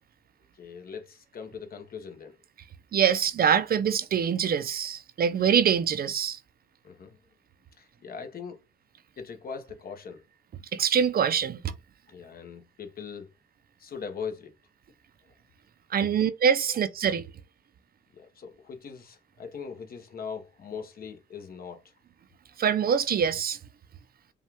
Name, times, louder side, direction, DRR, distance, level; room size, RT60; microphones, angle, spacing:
voice 1, 0.5-2.4 6.8-7.2 7.8-8.6 9.2-10.2 12.1-13.3 13.8-14.5 16.0-16.1 18.1-21.9, left 6 dB, 50° left, 1.1 m, -40 dB
voice 2, 2.9-6.4 10.7-11.6 15.9-17.2 22.6-23.6, right 7 dB, 50° right, 0.5 m, -24 dB
5.4 x 2.4 x 3.4 m
cardioid pair, 90°, 20 cm